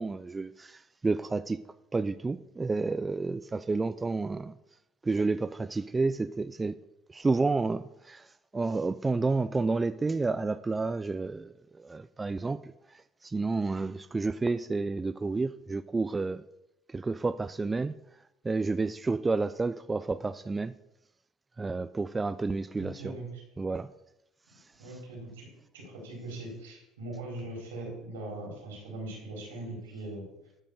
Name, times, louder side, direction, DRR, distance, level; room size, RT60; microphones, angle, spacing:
voice 1, 0.0-1.6 1.9-4.5 5.0-6.7 7.1-8.2 8.5-11.5 11.8-12.6 13.2-16.4 16.9-17.9 18.4-20.7 21.6-23.1 23.6-23.9, right 3 dB, 20° right, 13 dB, 0.5 m, -30 dB
voice 2, 22.7-23.4 24.8-25.5 25.7-30.3, right 2 dB, 90° right, -1 dB, 4.5 m, -40 dB
12.0 x 5.6 x 6.5 m, 0.88 s
hypercardioid pair, 70°, 0 cm